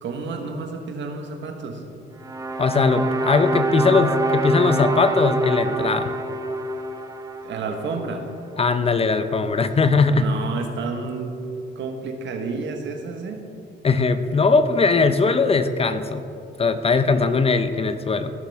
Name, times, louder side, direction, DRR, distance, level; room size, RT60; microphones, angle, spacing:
voice 1, 0.0-1.8 7.4-8.2 10.1-11.4 11.7-13.4, right 4 dB, 70° right, 4 dB, 1.3 m, -30 dB
sound 1, 2.2-8.4, right 2 dB, 15° right, 0.7 m, -26 dB
voice 2, 2.6-6.1 8.6-10.2 13.8-16.2 16.6-18.3, left 4 dB, 30° left, 10 dB, 0.6 m, -20 dB
15.5 x 6.6 x 3.5 m, 2.6 s
cardioid pair, 90°, 20 cm